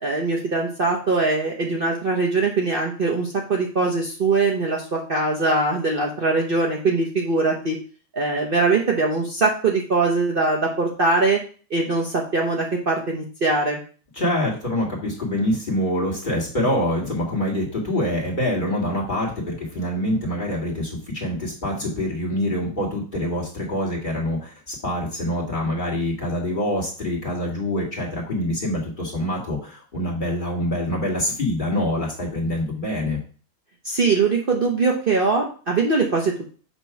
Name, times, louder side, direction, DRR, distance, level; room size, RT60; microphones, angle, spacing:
voice 1, 0.0-7.8 8.1-11.4 11.7-13.8 33.8-36.5, right 3 dB, 45° right, -1 dB, 1.0 m, -22 dB
voice 2, 14.2-33.2, left 1 dB, 35° left, -3 dB, 2.2 m, -25 dB
7.1 x 3.0 x 5.7 m, 0.39 s
omnidirectional pair, 1.5 m